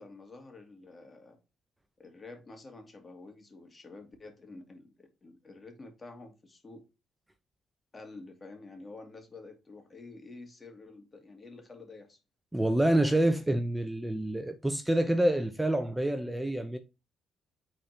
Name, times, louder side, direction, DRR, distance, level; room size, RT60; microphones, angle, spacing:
voice 1, 0.0-1.4 2.0-6.8 7.9-12.2, left 3 dB, 35° left, 2.4 m, -49 dB
voice 2, 12.5-16.8, right 1 dB, 10° right, 0.8 m, -27 dB
8.7 x 4.3 x 2.9 m
supercardioid pair, 55°, 0 cm